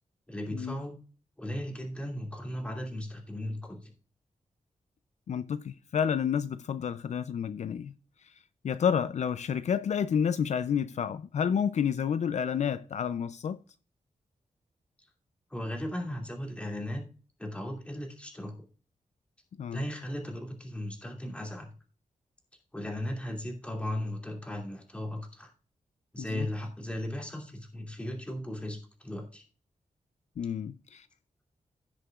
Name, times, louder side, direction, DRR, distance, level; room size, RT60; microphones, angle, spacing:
voice 1, 0.3-1.0 1.4-3.9 15.0-15.1 15.5-17.1 17.4-18.5 19.7-21.7 22.7-25.5 26.1-29.4, left 1 dB, 10° left, 2.5 m, -36 dB
voice 2, 5.3-7.9 8.2-8.3 8.6-13.6 19.6-19.8 26.2-26.5 30.4-31.1, left 7 dB, 65° left, 0.4 m, -30 dB
16.5 x 6.5 x 2.4 m
wide cardioid pair, 145°, 13 cm